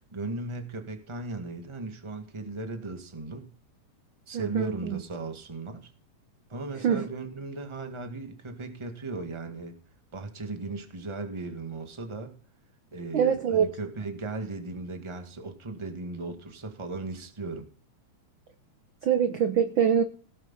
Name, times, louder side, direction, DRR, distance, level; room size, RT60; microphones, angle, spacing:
voice 1, 0.1-3.5 4.3-5.9 6.5-9.8 10.1-12.3 12.9-17.7, right 3 dB, 15° right, 6 dB, 1.2 m, -37 dB
voice 2, 4.3-5.0 6.8-7.1 13.1-13.7 19.0-20.0, right 8 dB, 70° right, 9 dB, 1.2 m, -24 dB
17.5 x 7.7 x 5.7 m, 0.40 s
omnidirectional pair, 3.5 m